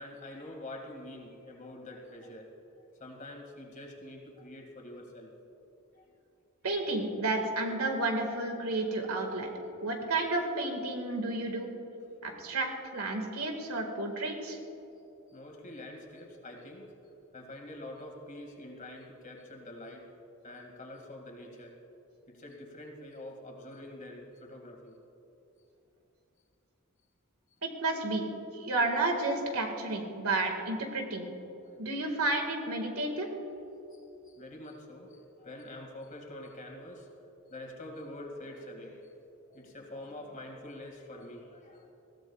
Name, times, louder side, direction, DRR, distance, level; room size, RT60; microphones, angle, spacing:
voice 1, 0.0-2.5 3.0-5.3 5.9-6.1 14.9-15.0 15.3-16.9 17.3-20.1 20.4-21.7 22.3-25.0 31.5-32.0 33.9-37.1 37.5-39.2 39.5-41.9, left 1 dB, 35° left, 1 dB, 2.2 m, -46 dB
voice 2, 6.6-9.5 9.8-11.7 12.2-14.6 27.6-28.3 28.5-31.3 31.8-33.3, right 2 dB, 85° right, 3 dB, 1.9 m, -31 dB
21.0 x 15.5 x 2.4 m, 3.0 s
head